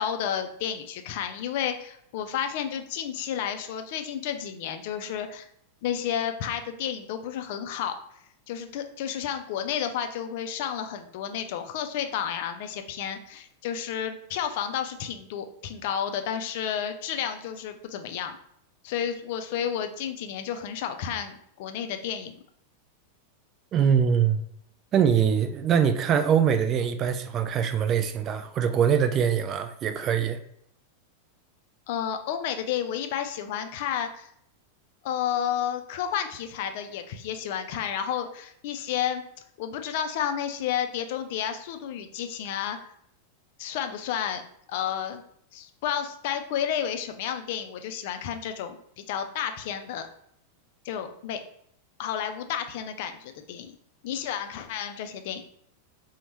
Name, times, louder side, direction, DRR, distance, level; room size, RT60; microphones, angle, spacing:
voice 1, 0.0-5.5 5.8-8.0 8.5-18.4 18.8-22.4 31.9-34.3 35.0-39.2 39.6-42.9 43.6-44.4 44.7-45.2 45.5-50.1 50.8-51.4 52.0-53.7 54.0-55.4, left 9 dB, 50° left, 7 dB, 0.3 m, -31 dB
voice 2, 23.7-24.5 24.9-30.4, right 8 dB, 30° right, 9 dB, 0.3 m, -23 dB
4.0 x 2.1 x 3.0 m, 0.70 s
figure-of-eight pair, 90°, 0 cm